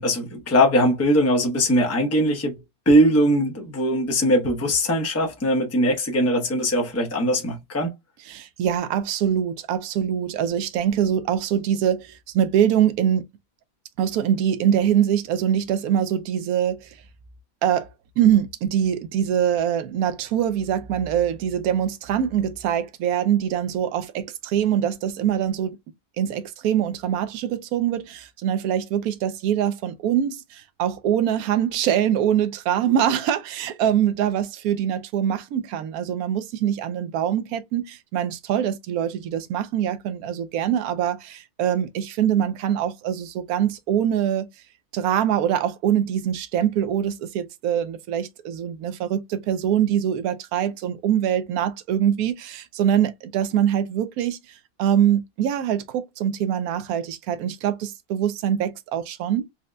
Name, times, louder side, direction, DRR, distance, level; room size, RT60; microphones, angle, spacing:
voice 1, 0.0-2.6 2.9-7.9, equal, 15° left, 0.5 m, -20 dB
voice 2, 8.3-13.2 14.0-17.0 17.6-17.9 18.2-25.8 26.2-44.5 44.9-59.5, right 9 dB, 75° right, 1.0 m, -23 dB
4.2 x 2.1 x 2.5 m
omnidirectional pair, 1.6 m